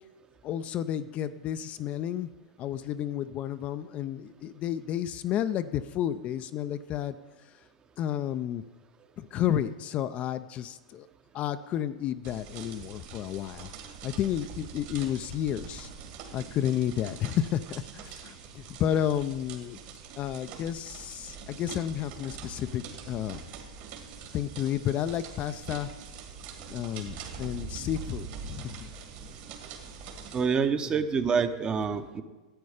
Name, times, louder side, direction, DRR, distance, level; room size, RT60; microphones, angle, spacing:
voice 1, 0.4-2.3 2.6-7.2 7.4-7.6 8.0-8.6 9.2-11.1 11.3-13.7 14.0-15.9 16.3-19.8 20.2-23.4 24.3-25.9 26.6-28.9 30.9-31.0, left 10 dB, 35° left, 11 dB, 0.4 m, -31 dB
sound 1, 12.2-30.4, right 6 dB, 55° right, 2.2 m, -44 dB
voice 2, 30.3-32.2, right 6 dB, 25° right, 9 dB, 0.8 m, -27 dB
12.5 x 8.5 x 5.0 m, 1.2 s
hypercardioid pair, 115°, 4 cm